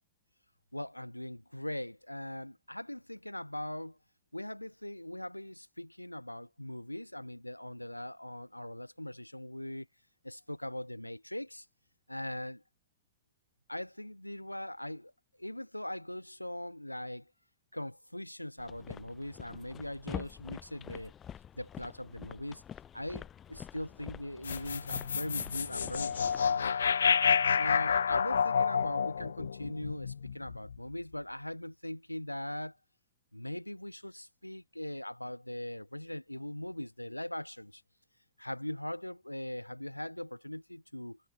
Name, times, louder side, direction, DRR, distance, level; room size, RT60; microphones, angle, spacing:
voice 1, 0.7-4.0 4.3-9.9 10.2-11.7 12.1-12.6 13.7-15.1 15.4-17.3 17.7-21.1 21.5-22.6 22.9-26.8 27.5-32.8 33.3-37.8 38.4-41.2, left 1 dB, 90° left, 1.6 m, -40 dB
sound 1, 18.6-26.6, left 9 dB, 25° left, 2.4 m, -47 dB
sound 2, 24.4-30.8, left 6 dB, 70° left, 0.3 m, -29 dB
figure-of-eight pair, 90°, 0 cm